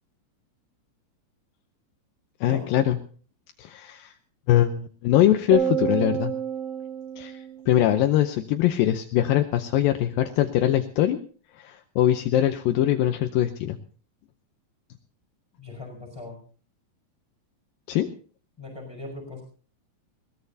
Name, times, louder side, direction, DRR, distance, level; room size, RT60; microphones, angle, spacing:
voice 1, 2.4-3.0 3.6-4.1 4.5-6.3 7.2-11.2 11.6-13.8 17.9-18.1, left 12 dB, 80° left, 6 dB, 2.5 m, -22 dB
sound 1, 5.5-8.0, right 8 dB, 45° right, 4.8 m, -29 dB
voice 2, 15.6-16.4 18.6-19.4, left 2 dB, 5° left, 2 dB, 5.0 m, -39 dB
21.0 x 18.0 x 2.7 m, 0.41 s
omnidirectional pair, 4.1 m